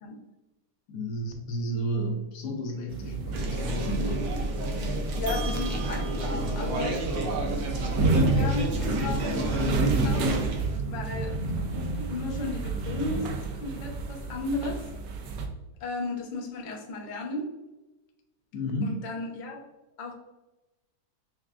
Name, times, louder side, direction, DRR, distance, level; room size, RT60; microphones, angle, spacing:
voice 1, 0.9-4.3 7.2-7.6 18.5-19.0, right 1 dB, 80° left, 2 dB, 1.3 m, -32 dB
sound 1, 2.9-15.5, right 3 dB, 80° right, 1.3 m, -30 dB
sound 2, 3.3-10.8, right 1 dB, 65° right, 0.8 m, -31 dB
voice 2, 5.1-7.0 8.3-10.3 10.9-11.5 12.0-13.3 13.5-14.8 15.8-17.5 18.8-19.6 20.0-20.1, left 3 dB, 60° left, 0 dB, 0.5 m, -34 dB
5.9 x 2.3 x 2.4 m, 1.0 s
omnidirectional pair, 1.8 m